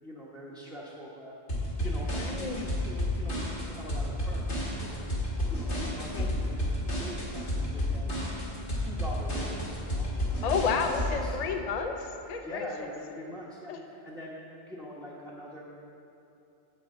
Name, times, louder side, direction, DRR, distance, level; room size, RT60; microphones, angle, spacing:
voice 1, 0.0-1.3 1.8-5.1 5.5-8.3 8.6-10.8 11.2-11.5 12.4-14.4 14.7-15.6, equal, ahead, -7 dB, 0.9 m, -44 dB
sound 1, 1.5-11.1, left 1 dB, 75° left, 2.2 m, -31 dB
voice 2, 2.1-2.6 6.1-6.3 10.4-12.9 13.7-13.8, left 5 dB, 45° left, 5 dB, 0.6 m, -31 dB
9.7 x 4.6 x 7.6 m, 2.8 s
omnidirectional pair, 1.2 m